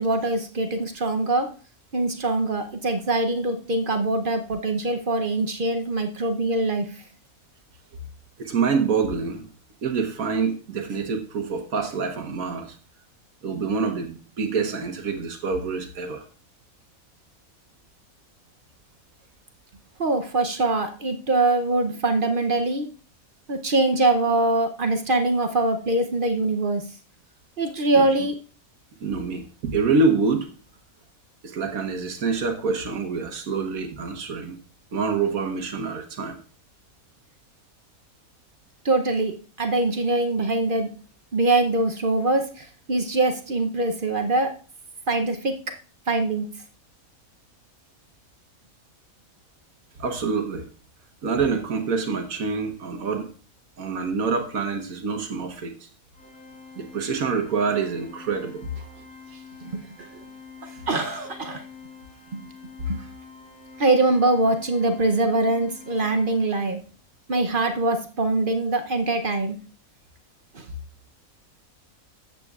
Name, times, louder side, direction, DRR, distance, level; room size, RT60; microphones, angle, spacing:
voice 1, 0.0-1.5 1.9-7.0 20.0-22.9 23.5-26.8 27.6-28.3 38.8-39.3 39.6-40.9 41.3-44.5 45.1-45.5 46.1-46.5 59.6-60.1 60.6-61.6 62.3-62.4 62.9-63.0 63.8-66.8 67.3-69.6 70.5-70.7, right 2 dB, 45° right, 6 dB, 0.8 m, -23 dB
voice 2, 8.4-9.5 9.8-12.8 13.4-16.2 27.9-28.0 29.0-30.5 31.4-34.6 34.9-36.4 50.0-50.7 51.2-53.3 53.8-55.9 56.8-58.9 59.3-59.4, right 4 dB, 75° right, 5 dB, 1.4 m, -26 dB
Organ, 56.1-66.9, left 5 dB, 50° left, 4.2 m, -46 dB
13.5 x 8.1 x 2.4 m, 0.39 s
omnidirectional pair, 1.5 m